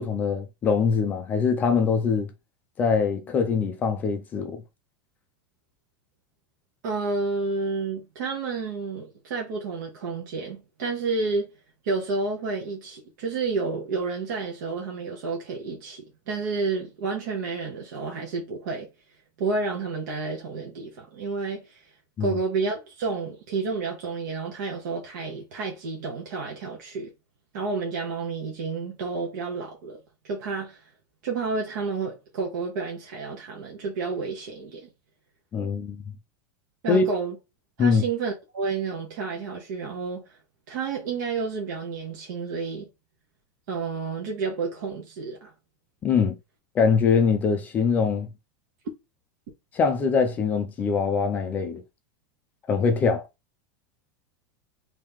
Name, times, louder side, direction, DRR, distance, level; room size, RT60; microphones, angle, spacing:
voice 1, 0.0-2.3 2.8-4.6 22.2-22.4 35.5-36.0 36.9-37.1 37.8-38.0 46.0-46.3 46.8-48.3 49.7-51.8 52.7-53.2, left 5 dB, 15° left, 0.3 m, -23 dB
voice 2, 6.8-11.5 11.8-18.9 19.4-21.8 22.2-27.1 27.5-30.0 30.2-30.8 31.2-34.9 36.8-37.3 37.8-40.3 40.7-42.9 43.7-45.5, right 4 dB, 55° right, 1.0 m, -30 dB
3.0 x 2.7 x 3.5 m
supercardioid pair, 175°, 11 cm